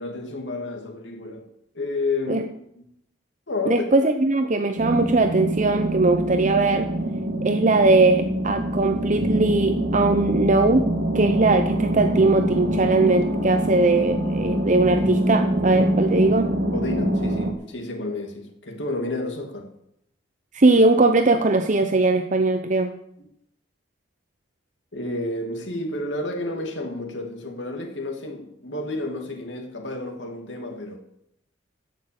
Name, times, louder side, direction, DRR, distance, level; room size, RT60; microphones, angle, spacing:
voice 1, 0.0-1.5 1.7-2.8 3.5-4.0 16.7-19.8 24.9-31.0, left 2 dB, 70° left, 2.6 m, -30 dB
voice 2, 3.7-6.9 7.4-10.9 11.1-16.5 20.5-22.9, right 3 dB, 40° right, 0.8 m, -20 dB
sound 1, 4.8-17.5, right 1 dB, 65° right, 1.9 m, -25 dB
14.0 x 6.6 x 8.8 m
head